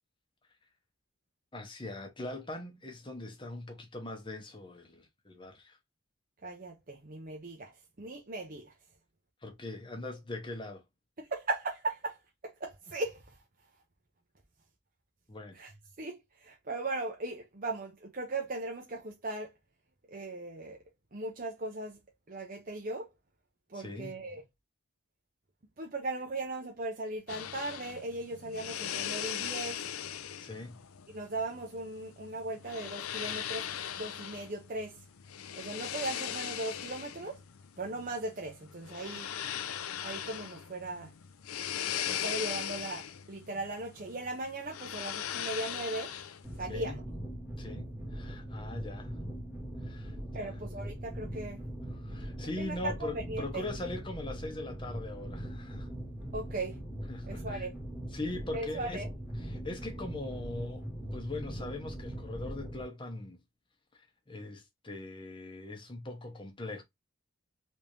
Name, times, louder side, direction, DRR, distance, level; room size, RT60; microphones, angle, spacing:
voice 1, 1.5-5.8 9.4-10.8 15.3-15.6 23.7-24.1 30.4-30.8 46.6-47.0 47.6-49.2 49.8-50.6 52.0-55.9 57.1-57.7 58.1-59.0 59.4-63.4 63.9-66.8, left 2 dB, 25° left, 1.0 m, -41 dB
voice 2, 6.4-8.7 11.2-13.4 15.5-15.7 16.0-19.5 20.1-20.8 21.1-22.0 22.3-23.1 23.7-24.4 25.8-29.8 31.1-33.6 33.9-35.0 35.6-37.4 37.8-39.3 40.0-41.1 42.1-46.2 46.6-47.0 50.3-51.6 52.6-53.6 56.3-56.8 57.3-57.7 58.5-59.1, right 2 dB, 40° right, 0.8 m, -38 dB
sound 1, 27.3-46.6, left 10 dB, 85° left, 0.5 m, -39 dB
sound 2, 46.4-62.8, equal, 5° right, 1.5 m, -41 dB
3.5 x 3.2 x 2.6 m
head